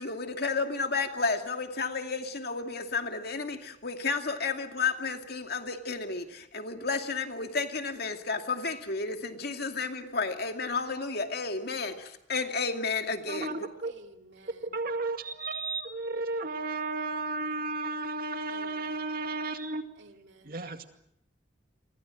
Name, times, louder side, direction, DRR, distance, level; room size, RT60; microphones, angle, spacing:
voice 1, 0.0-13.5, left 4 dB, 60° left, 5 dB, 2.4 m, -32 dB
voice 2, 13.3-13.9 14.6-19.9 20.4-20.8, right 3 dB, 55° right, 7 dB, 2.2 m, -33 dB
voice 3, 13.8-14.7 18.5-18.9 20.0-20.5, right 2 dB, 75° right, 5 dB, 2.6 m, -54 dB
29.5 x 24.5 x 6.4 m, 0.76 s
head